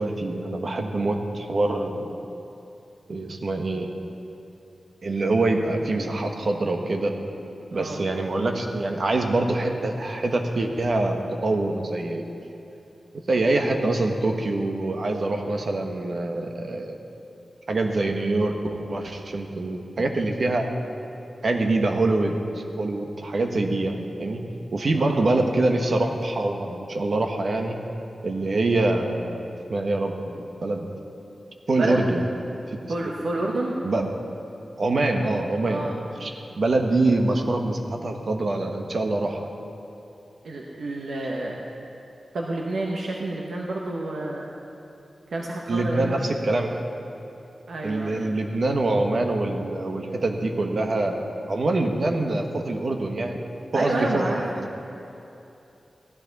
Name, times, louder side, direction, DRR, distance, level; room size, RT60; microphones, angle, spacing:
voice 1, 0.0-2.2 3.1-3.9 5.0-7.1 7.7-12.2 13.3-17.0 17.7-20.7 21.4-24.4 24.7-27.8 28.2-29.4 29.7-30.9 31.7-32.2 32.7-33.1 33.8-34.1 34.8-35.9 36.2-39.4 45.7-46.8 47.8-53.4 53.7-54.7, right 2 dB, 60° right, 3 dB, 1.2 m, -25 dB
voice 2, 32.9-33.7 35.7-36.0 40.4-41.6 42.3-44.5 45.3-46.3 47.7-48.3 53.7-54.4, right 2 dB, 90° right, -1 dB, 1.1 m, -29 dB
16.0 x 13.0 x 4.1 m, 2.8 s
wide cardioid pair, 95°, 0 cm